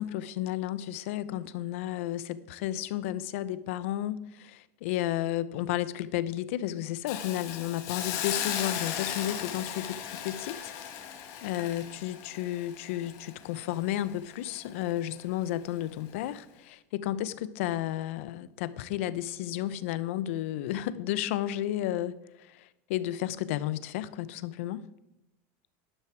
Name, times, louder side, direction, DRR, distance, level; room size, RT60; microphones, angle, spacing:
voice 1, 0.0-10.7 11.0-11.1 11.4-22.2 22.5-24.8, left 13 dB, 70° left, 0.7 m, -32 dB
Hiss, 7.1-14.1 14.5-14.7, left 9 dB, 45° left, 1.8 m, -36 dB
12.0 x 11.0 x 4.6 m
supercardioid pair, 165°, 7 cm